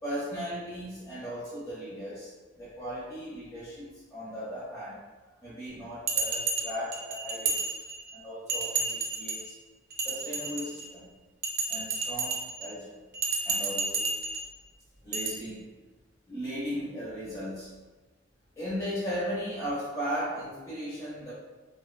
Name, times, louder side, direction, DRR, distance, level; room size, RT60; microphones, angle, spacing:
voice 1, 0.0-2.3 2.6-5.0 5.4-7.7 8.1-9.5 10.0-11.1 11.7-13.0 13.4-14.1 15.0-15.6 16.3-17.7 18.6-21.3, equal, 15° left, -10 dB, 0.5 m, -37 dB
Bell, 6.1-8.1 8.5-9.5 9.9-10.9 11.4-12.7 13.1-14.5 15.1-15.3, right 4 dB, 50° right, 0.4 m, -31 dB
2.4 x 2.2 x 2.3 m, 1.2 s
head